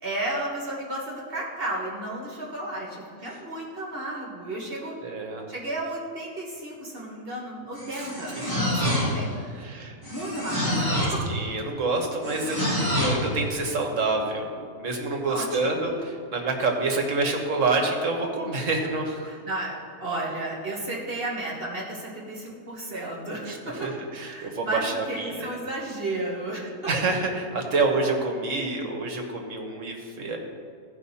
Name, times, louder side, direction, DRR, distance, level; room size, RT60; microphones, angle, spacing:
voice 1, 0.0-4.9 5.5-9.3 10.1-11.2 15.3-15.8 19.3-23.9 24.2-26.7, right 1 dB, 40° right, -3 dB, 1.7 m, -33 dB
voice 2, 5.0-5.5 7.9-8.1 8.4-8.5 9.6-10.0 11.3-14.5 14.8-19.3 23.5-23.6 23.8-25.5 26.9-30.4, right 3 dB, 60° right, 2 dB, 1.6 m, -27 dB
sound 1, 7.7-9.3 10.0-11.3 12.2-13.3, equal, 15° left, 2.1 m, -26 dB
15.0 x 5.4 x 4.2 m, 2.2 s
omnidirectional pair, 1.5 m